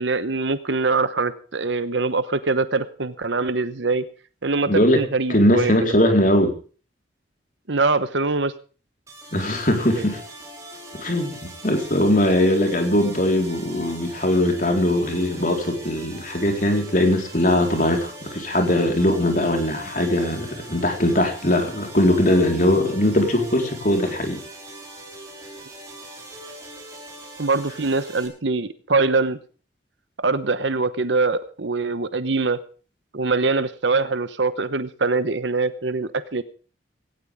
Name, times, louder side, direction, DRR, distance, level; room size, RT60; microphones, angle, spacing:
voice 1, 0.0-4.0 4.4-5.9 7.7-8.5 10.0-10.1 27.4-29.4 30.2-32.6 33.1-36.4, right 3 dB, 75° right, 12 dB, 1.0 m, -23 dB
voice 2, 4.7-5.0 5.3-6.5 9.3-10.2 11.0-11.4 11.6-24.4, left 1 dB, 45° left, 3 dB, 4.2 m, -20 dB
sound 1, 9.1-28.3, right 1 dB, 15° right, 6.0 m, -41 dB
18.0 x 17.0 x 3.6 m, 0.39 s
head